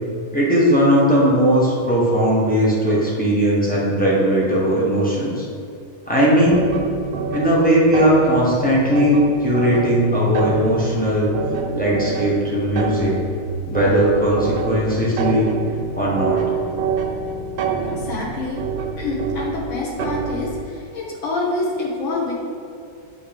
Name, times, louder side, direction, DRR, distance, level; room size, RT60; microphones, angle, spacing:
voice 1, 0.3-5.4 6.1-6.6 7.3-11.3 11.7-13.1 13.7-15.5 15.9-16.4, equal, 10° left, -7 dB, 0.4 m, -18 dB
sound 1, 6.5-20.7, right 5 dB, 70° right, 1.3 m, -27 dB
voice 2, 18.0-18.6 19.0-22.3, left 2 dB, 80° left, -3 dB, 1.9 m, -26 dB
7.6 x 3.0 x 5.1 m, 2.3 s
omnidirectional pair, 2.2 m